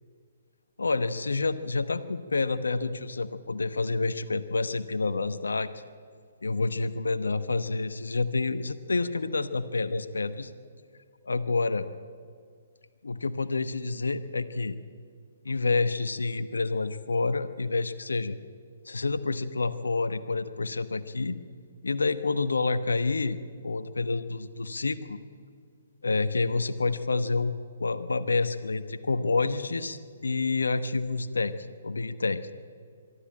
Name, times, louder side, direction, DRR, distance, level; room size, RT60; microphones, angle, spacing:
voice 1, 0.8-5.7 6.4-10.5 11.2-11.9 13.0-14.8 15.4-18.4 18.8-21.4 21.8-23.4 23.6-25.2 26.0-31.5 31.8-32.4, left 3 dB, 80° left, 11 dB, 1.1 m, -28 dB
23.0 x 13.0 x 8.7 m, 2.1 s
figure-of-eight pair, 130°, 0 cm